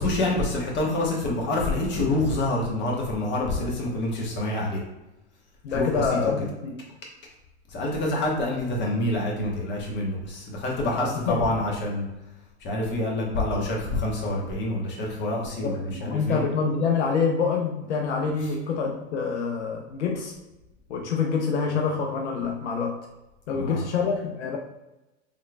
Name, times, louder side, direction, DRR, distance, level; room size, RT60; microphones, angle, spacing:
voice 1, 0.0-4.8 5.7-6.2 7.7-12.0 12.6-16.4 23.5-23.9, left 1 dB, 30° left, -2 dB, 1.1 m, -27 dB
voice 2, 5.6-6.7 10.9-11.5 15.6-20.3 20.9-23.0 23.5-24.6, left 5 dB, 80° left, 1 dB, 0.6 m, -26 dB
3.7 x 3.1 x 2.3 m, 0.99 s
hypercardioid pair, 105°, 34 cm